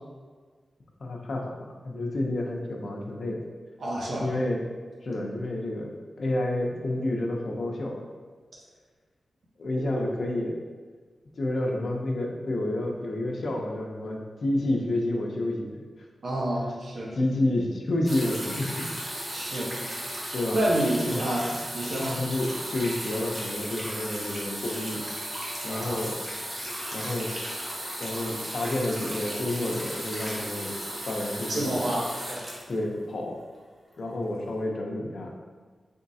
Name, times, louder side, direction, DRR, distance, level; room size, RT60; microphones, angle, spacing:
voice 1, 1.0-3.4 4.2-4.6 5.0-5.9 6.2-8.0 9.6-10.6 11.4-15.8 17.1-18.9 20.3-20.6 21.0-21.6 22.1-25.0 25.6-26.2 26.9-27.3 28.0-30.8 31.1-31.9 32.7-33.4 34.0-35.4, left 1 dB, 60° left, 1 dB, 0.5 m, -29 dB
voice 2, 3.8-4.3 16.2-17.1 19.3-19.7 20.5-21.5 21.7-22.1 25.7-26.0 31.5-32.4, right 1 dB, 65° right, -4 dB, 0.9 m, -28 dB
sound 1, 18.1-33.4 34.3-34.4, equal, 25° right, 0.8 m, -35 dB
3.9 x 3.5 x 2.6 m, 1.5 s
wide cardioid pair, 120°, 0 cm